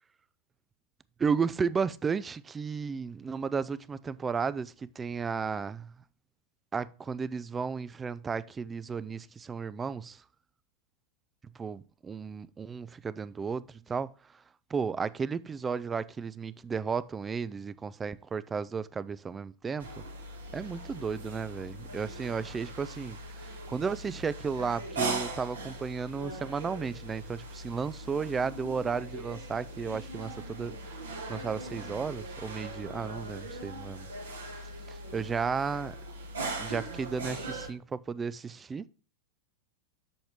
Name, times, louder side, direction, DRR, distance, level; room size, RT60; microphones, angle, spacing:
voice 1, 1.2-5.9 6.7-10.2 11.6-14.1 14.7-19.9 20.5-23.2 23.7-30.8 31.3-34.1 34.4-34.5 35.1-35.9 36.6-38.8, right 5 dB, 15° right, 0.4 m, -33 dB
sound 1, 19.8-37.7, right 2 dB, 70° right, 1.7 m, -40 dB
7.8 x 6.3 x 3.4 m
figure-of-eight pair, 90°, 0 cm